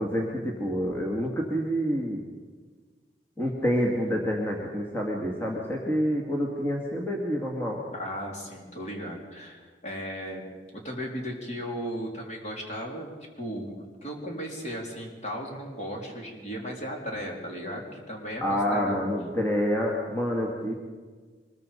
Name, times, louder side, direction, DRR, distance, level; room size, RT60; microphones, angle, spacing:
voice 1, 0.0-2.2 3.4-7.8 18.4-20.7, equal, 10° left, -2 dB, 2.3 m, -27 dB
voice 2, 7.9-13.1 13.4-19.0, equal, 40° left, 0 dB, 4.0 m, -36 dB
24.0 x 21.5 x 5.4 m, 1.5 s
head